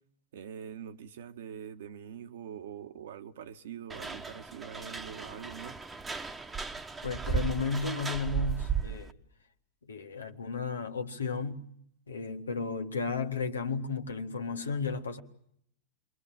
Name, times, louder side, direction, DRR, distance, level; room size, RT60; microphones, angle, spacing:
voice 1, 0.3-5.8 6.0-6.1, right 8 dB, 60° right, 1.4 m, -44 dB
sound 1, 3.9-9.1, right 6 dB, 15° right, 1.3 m, -35 dB
voice 2, 7.0-9.1 9.8-11.7 12.1-15.2, left 4 dB, 75° left, 1.9 m, -33 dB
30.0 x 23.0 x 7.6 m
figure-of-eight pair, 90°, 0 cm